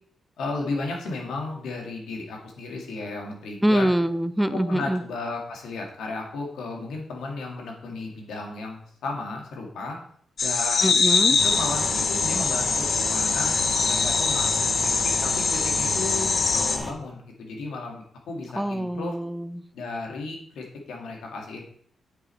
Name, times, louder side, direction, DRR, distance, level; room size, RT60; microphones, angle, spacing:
voice 1, 0.4-3.9 4.5-10.0 10.4-10.9 11.3-13.5 13.9-14.9 15.2-19.1 19.7-21.7, left 3 dB, 85° left, 0 dB, 2.1 m, -34 dB
voice 2, 3.6-5.0 10.8-11.4 18.5-19.6, right 1 dB, 5° right, 12 dB, 0.5 m, -24 dB
sound 1, 10.4-16.8, left 4 dB, 55° left, 0.9 m, -23 dB
sound 2, 11.4-16.9, left 1 dB, 10° left, 1.2 m, -33 dB
9.1 x 5.0 x 4.4 m, 0.62 s
cardioid pair, 85°, 0 cm